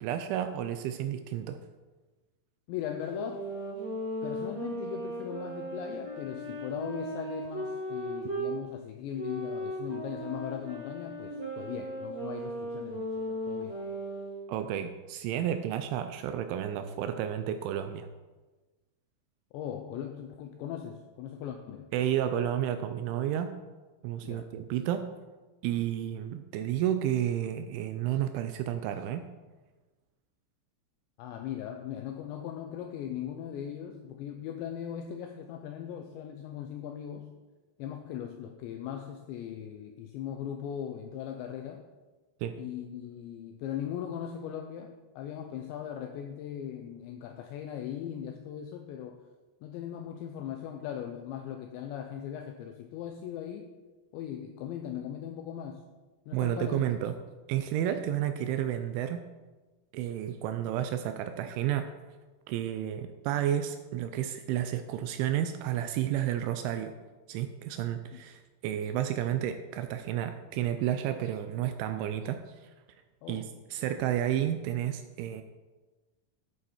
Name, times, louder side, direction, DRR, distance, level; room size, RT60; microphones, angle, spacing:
voice 1, 0.0-1.6 14.5-18.1 21.9-23.5 24.0-25.1 25.6-29.2 42.4-42.6 56.3-57.1 57.5-59.2 59.9-61.9 62.5-66.9 67.3-72.6 73.3-73.4 73.7-75.4, right 11 dB, 85° right, 8 dB, 2.8 m, -31 dB
voice 2, 2.7-3.5 4.2-13.8 19.5-21.9 24.2-24.5 31.2-37.4 37.8-41.9 42.6-49.2 49.6-53.7 54.1-55.9 56.3-56.9 68.1-68.2 73.2-73.6, left 9 dB, 85° left, 5 dB, 2.5 m, -39 dB
sound 1, 3.0-8.5 9.1-14.3, equal, 25° right, 3.7 m, -37 dB
11.0 x 8.7 x 4.4 m, 1.2 s
omnidirectional pair, 5.8 m